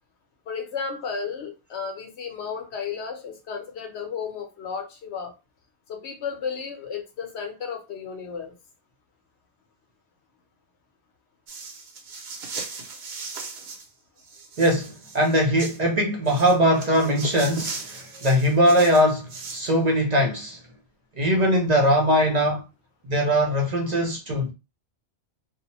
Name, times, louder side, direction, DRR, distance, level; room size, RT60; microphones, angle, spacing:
voice 1, 0.5-5.3 5.9-8.6, left 6 dB, 80° left, 1.0 m, -33 dB
sound 1, 11.5-13.9 14.2-15.8 16.3-19.7, right 4 dB, 70° right, 1.0 m, -37 dB
voice 2, 14.6-20.6 21.2-22.6 23.0-24.5, equal, 50° right, 0.5 m, -21 dB
2.7 x 2.0 x 2.8 m
omnidirectional pair, 1.1 m